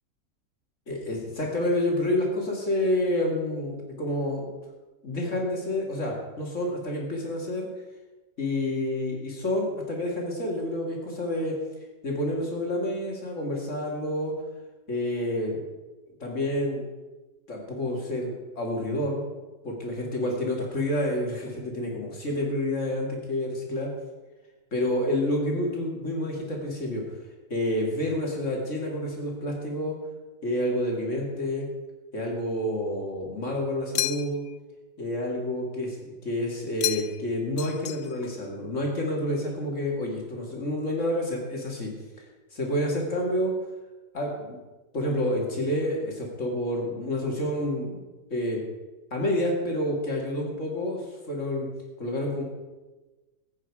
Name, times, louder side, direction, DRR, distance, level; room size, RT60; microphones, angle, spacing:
voice 1, 0.9-4.5 5.0-7.7 8.4-11.5 12.0-14.3 14.9-15.6 16.2-16.8 17.5-19.3 19.6-23.9 24.7-27.0 27.5-29.9 30.4-31.7 32.1-34.4 35.0-41.9 42.5-43.5 44.1-44.6 44.9-48.0 48.3-48.6 49.1-51.7 52.0-52.4, left 1 dB, 45° left, -1 dB, 2.9 m, -29 dB
sound 1, 34.0-34.6 36.8-37.3 37.6-38.3, left 13 dB, 65° left, 0.9 m, -31 dB
15.5 x 8.8 x 4.9 m, 1.2 s
omnidirectional pair, 1.8 m